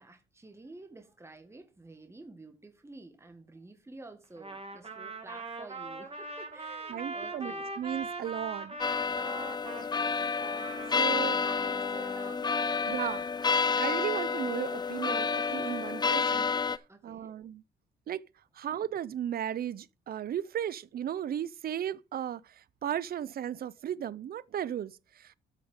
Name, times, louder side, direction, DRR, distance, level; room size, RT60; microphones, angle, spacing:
voice 1, 0.0-7.7 9.7-10.0 10.3-13.2 16.9-17.4, right 2 dB, 15° right, 1.7 m, -50 dB
Trumpet, 4.4-9.9 10.4-12.3, right 3 dB, 30° right, 2.2 m, -41 dB
voice 2, 6.9-8.8 11.0-11.4 12.9-13.2 13.8-17.6 18.1-18.2 18.5-25.4, right 10 dB, 50° right, 0.6 m, -35 dB
sound 1, 8.8-16.8, left 5 dB, 20° left, 0.5 m, -30 dB
13.0 x 6.2 x 3.7 m
cardioid pair, 90°, 20 cm